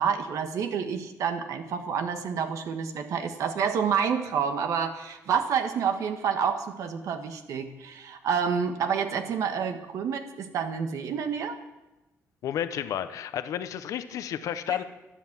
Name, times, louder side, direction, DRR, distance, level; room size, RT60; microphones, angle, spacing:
voice 1, 0.0-11.5 14.7-14.8, right 7 dB, 75° right, 7 dB, 1.5 m, -28 dB
voice 2, 12.4-14.8, left 10 dB, 80° left, 11 dB, 0.8 m, -31 dB
12.5 x 10.5 x 7.3 m, 1.0 s
cardioid pair, 105°, 6 cm